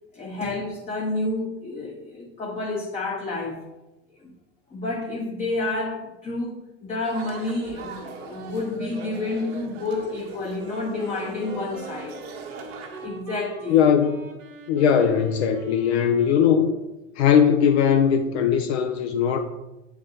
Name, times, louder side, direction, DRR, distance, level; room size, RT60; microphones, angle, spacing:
voice 1, 0.1-3.7 4.2-4.3 4.7-12.2 13.0-13.8, left 2 dB, 15° left, -1 dB, 0.8 m, -29 dB
sound 1, 7.0-13.1, right 5 dB, 55° right, 1.1 m, -40 dB
Wind instrument woodwind instrument, 10.5-17.0, right 3 dB, 80° right, 1.1 m, -41 dB
voice 2, 13.7-14.2 14.7-16.7 17.2-19.4, left 8 dB, 55° left, 5 dB, 0.6 m, -19 dB
8.4 x 4.0 x 2.8 m, 0.98 s
figure-of-eight pair, 80°, 38 cm